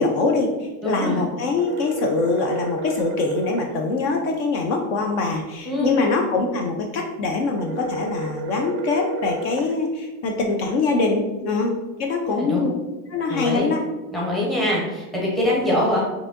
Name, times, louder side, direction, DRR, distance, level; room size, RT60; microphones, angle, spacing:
voice 1, 0.0-12.7 13.1-13.8, left 3 dB, 50° left, 2 dB, 0.5 m, -23 dB
voice 2, 0.8-1.2 5.6-6.0 12.3-12.7 13.3-13.7 14.1-16.0, left 1 dB, ahead, -5 dB, 0.7 m, -23 dB
sound 1, 1.6-3.7 7.6-9.7, right 3 dB, 35° right, 0.4 m, -31 dB
4.7 x 2.8 x 2.5 m, 1.1 s
supercardioid pair, 140°, 45 cm